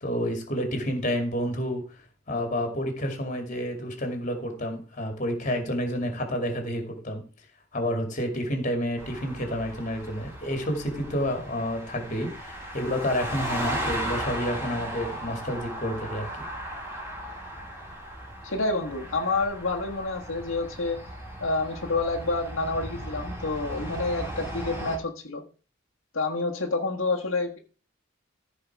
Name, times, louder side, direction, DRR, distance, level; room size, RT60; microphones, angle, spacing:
voice 1, 0.0-1.8 2.3-7.2 7.7-16.5, equal, 40° left, 4 dB, 2.4 m, -29 dB
sound 1, 9.0-25.0, right 1 dB, 15° right, 3.3 m, -36 dB
voice 2, 18.4-21.0 21.4-25.4 26.1-27.6, left 3 dB, 85° left, 0 dB, 1.6 m, -28 dB
14.0 x 5.0 x 4.7 m, 0.37 s
head